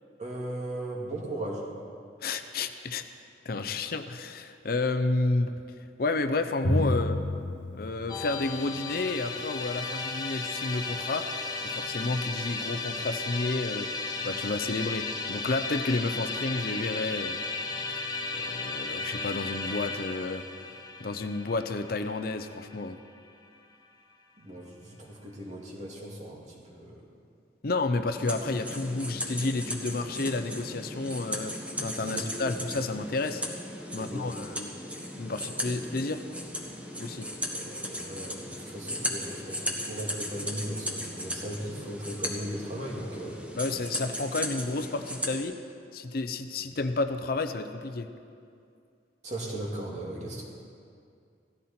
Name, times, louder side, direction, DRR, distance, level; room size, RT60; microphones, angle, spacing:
voice 1, 0.2-1.7 24.4-27.0 32.0-32.6 34.0-34.5 37.5-43.4 49.2-50.4, right 1 dB, 40° right, -3 dB, 2.4 m, -37 dB
voice 2, 2.2-3.1 3.4-5.5 6.0-7.2 7.7-11.3 11.6-13.9 14.2-17.4 18.3-20.4 21.0-23.0 27.6-31.5 31.8-33.4 33.9-34.7 35.2-36.2 37.0-37.3 43.6-45.5 45.9-48.1, left 3 dB, 55° left, 9 dB, 0.6 m, -31 dB
Drum, 6.6-9.0, left 1 dB, 80° left, 1.5 m, -30 dB
Musical instrument, 8.1-23.3, left 3 dB, 20° left, 0.9 m, -35 dB
sound 1, 28.2-45.4, equal, 10° right, 1.4 m, -36 dB
16.5 x 14.5 x 4.3 m, 2.4 s
head